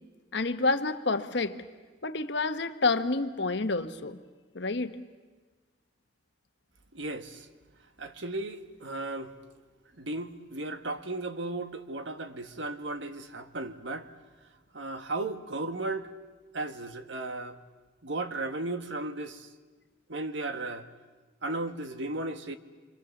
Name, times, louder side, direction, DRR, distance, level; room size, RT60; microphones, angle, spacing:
voice 1, 0.3-1.6 2.0-4.2 4.5-5.0, left 3 dB, 60° left, 1.1 m, -28 dB
voice 2, 6.9-7.5 8.0-9.3 10.0-14.1 14.7-16.1 16.5-17.6 18.0-19.5 20.1-20.9 21.4-22.6, right 2 dB, 70° right, 1.4 m, -35 dB
27.0 x 25.0 x 7.1 m
head